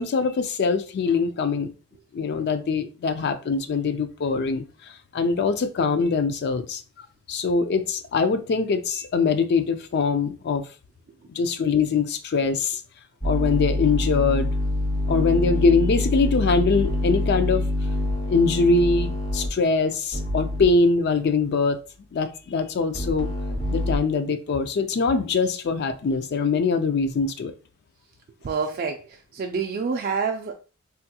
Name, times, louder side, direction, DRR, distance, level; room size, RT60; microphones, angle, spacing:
voice 1, 0.0-1.7 2.1-4.6 5.1-10.6 11.3-12.8 13.2-14.5 15.1-17.6 18.3-21.8 22.1-23.3 23.7-27.5, left 4 dB, 55° left, 0.4 m, -23 dB
sound 1, 13.2-19.5 20.1-20.6 22.9-24.0, left 1 dB, 25° left, 0.9 m, -25 dB
voice 2, 28.4-30.5, right 5 dB, 45° right, 0.3 m, -27 dB
3.4 x 2.8 x 2.2 m
head